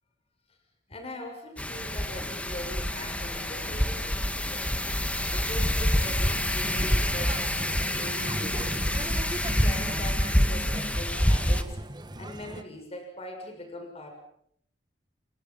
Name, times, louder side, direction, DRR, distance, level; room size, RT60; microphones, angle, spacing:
voice 1, 0.9-4.8 5.0-8.9 9.3-11.8 12.2-14.1, left 1 dB, 35° left, 4 dB, 6.9 m, -42 dB
Wind, 1.6-11.6, equal, 10° left, 1.9 m, -27 dB
sound 1, 6.6-12.6, right 1 dB, 25° right, 1.7 m, -37 dB
30.0 x 28.5 x 5.7 m, 0.68 s
head